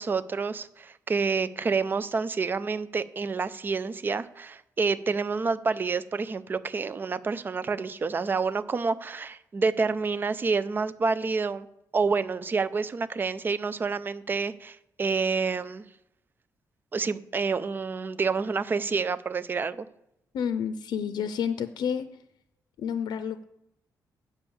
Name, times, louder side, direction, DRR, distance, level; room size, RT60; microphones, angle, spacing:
voice 1, 0.0-11.7 11.9-15.9 16.9-19.9, right 4 dB, 30° right, 14 dB, 0.4 m, -28 dB
voice 2, 20.3-22.2 22.8-23.4, left 7 dB, 85° left, 11 dB, 0.5 m, -30 dB
8.4 x 5.5 x 7.1 m, 0.82 s
wide cardioid pair, 155°, 7 cm